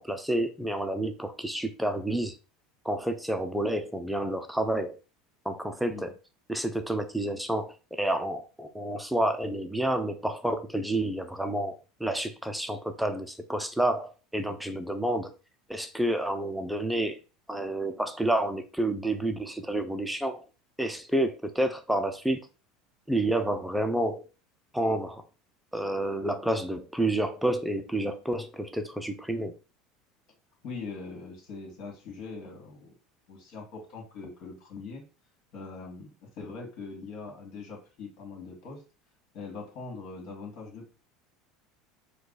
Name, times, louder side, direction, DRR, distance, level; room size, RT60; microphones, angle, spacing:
voice 1, 0.0-2.4 2.8-5.0 5.5-6.1 6.5-15.3 15.7-17.2 17.5-20.4 20.8-22.4 23.1-24.3 24.7-25.2 25.7-29.6, right 1 dB, 5° right, 0.6 m, -29 dB
voice 2, 30.6-32.9 33.3-35.0 35.5-38.8 39.3-40.9, left 4 dB, 60° left, 2.1 m, -42 dB
4.6 x 2.4 x 4.0 m
hypercardioid pair, 90°, 0 cm